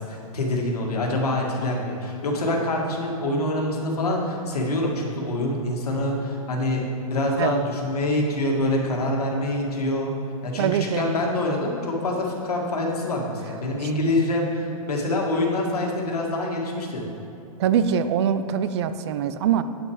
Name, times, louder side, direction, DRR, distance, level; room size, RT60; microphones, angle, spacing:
voice 1, 0.0-10.1 10.4-17.0, left 1 dB, 90° left, 0 dB, 1.8 m, -25 dB
voice 2, 10.6-11.1 13.8-13.9 17.6-19.6, right 8 dB, 45° right, 12 dB, 0.4 m, -23 dB
8.5 x 6.1 x 4.9 m, 2.9 s
hypercardioid pair, 145°, 19 cm